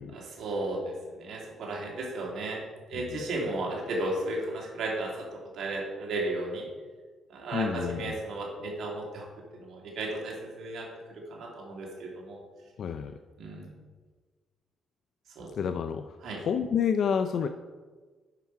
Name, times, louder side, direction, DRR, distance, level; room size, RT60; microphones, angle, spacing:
voice 1, 0.1-2.6 2.9-6.7 7.3-9.3 9.5-10.9 11.3-12.4 13.4-13.7 15.4-15.5 16.2-16.4, right 2 dB, 70° right, -2 dB, 2.6 m, -34 dB
voice 2, 7.5-8.2 12.8-13.2 15.6-17.5, left 7 dB, 60° left, 8 dB, 0.4 m, -29 dB
9.6 x 5.8 x 4.7 m, 1.4 s
cardioid pair, 90°, 0 cm